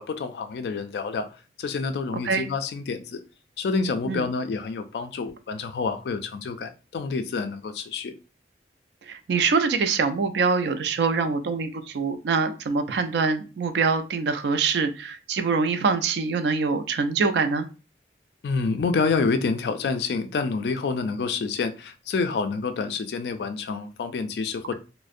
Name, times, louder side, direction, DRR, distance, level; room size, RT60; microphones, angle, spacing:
voice 1, 0.0-1.3 1.6-3.2 3.6-8.1 18.4-24.7, left 4 dB, 65° left, 0.3 m, -28 dB
voice 2, 9.1-17.7, right 4 dB, 75° right, 0.4 m, -24 dB
2.5 x 2.0 x 2.4 m
head